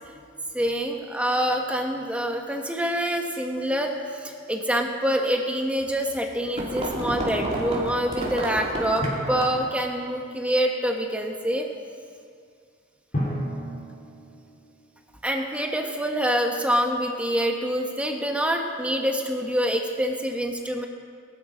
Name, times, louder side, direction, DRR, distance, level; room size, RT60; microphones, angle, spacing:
voice 1, 0.5-11.7 15.2-20.9, equal, 5° right, 2 dB, 1.3 m, -26 dB
sound 1, 5.9-9.7, right 1 dB, 30° right, 2.7 m, -31 dB
Drum, 9.0-10.5 13.1-15.3, equal, 40° left, 3.6 m, -33 dB
20.5 x 11.5 x 5.1 m, 2.2 s
head